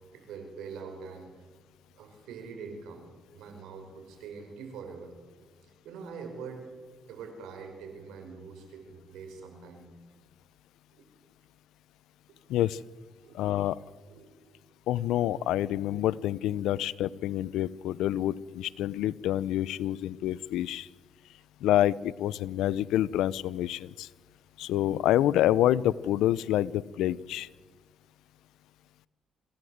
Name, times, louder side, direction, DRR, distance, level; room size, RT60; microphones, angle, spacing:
voice 1, 0.1-1.5 1.9-3.1 3.3-5.2 5.5-6.7 7.1-9.9 12.3-12.4 13.2-13.6 14.0-14.3 15.7-15.8 16.5-16.7 27.7-27.8, right 5 dB, 90° right, 5 dB, 5.1 m, -44 dB
voice 2, 12.5-12.8 13.3-13.8 14.9-20.9 21.6-24.1 24.6-27.5, left 13 dB, 90° left, 20 dB, 0.6 m, -27 dB
26.0 x 16.5 x 8.0 m, 1.4 s
cardioid pair, 90°, 0 cm